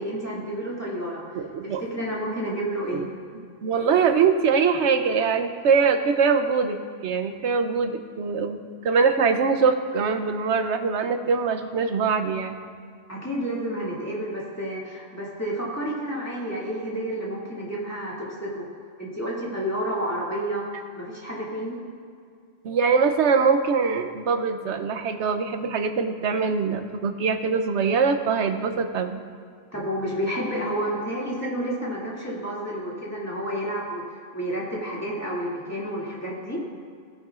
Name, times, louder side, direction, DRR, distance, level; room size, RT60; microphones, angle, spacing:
voice 1, 0.0-1.2 1.6-3.0 13.1-18.6 19.0-20.7 20.9-21.8 29.7-34.0 34.3-36.6, equal, 15° left, -6 dB, 2.3 m, -30 dB
voice 2, 1.3-1.8 2.9-3.1 3.6-6.8 7.0-12.6 22.6-29.2, right 5 dB, 75° right, 7 dB, 1.0 m, -23 dB
16.5 x 10.5 x 2.5 m, 2.2 s
omnidirectional pair, 1.2 m